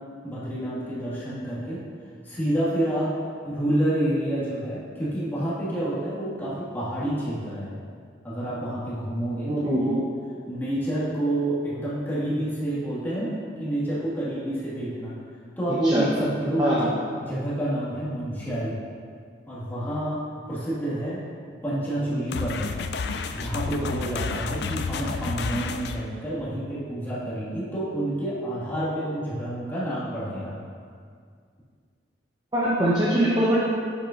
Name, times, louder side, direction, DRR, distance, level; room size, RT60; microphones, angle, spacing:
voice 1, 0.2-1.8 2.2-3.1 3.4-7.8 8.2-10.0 10.5-13.3 13.6-15.2 15.6-18.8 19.5-20.2 20.5-21.2 21.6-22.7 23.3-30.6, right 1 dB, 10° left, -10 dB, 1.8 m, -28 dB
voice 2, 9.5-9.9 15.8-16.1 16.6-16.9 32.5-33.6, right 1 dB, 20° right, -7 dB, 0.8 m, -22 dB
sound 1, 22.3-26.1, left 4 dB, 60° left, 0.3 m, -30 dB
8.3 x 7.0 x 2.5 m, 2.1 s
head